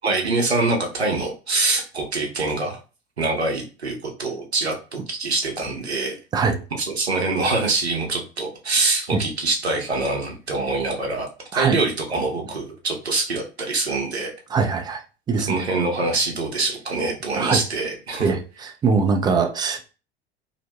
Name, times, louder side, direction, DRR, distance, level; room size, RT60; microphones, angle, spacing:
voice 1, 0.0-2.8 3.2-6.2 6.7-14.3 15.5-18.3, right 3 dB, 85° right, 0.8 m, -24 dB
voice 2, 14.5-15.0 15.3-15.6 17.4-17.6 18.2-18.4 18.8-19.8, right 5 dB, 15° right, 0.3 m, -21 dB
2.8 x 2.0 x 2.7 m
figure-of-eight pair, 75°, 31 cm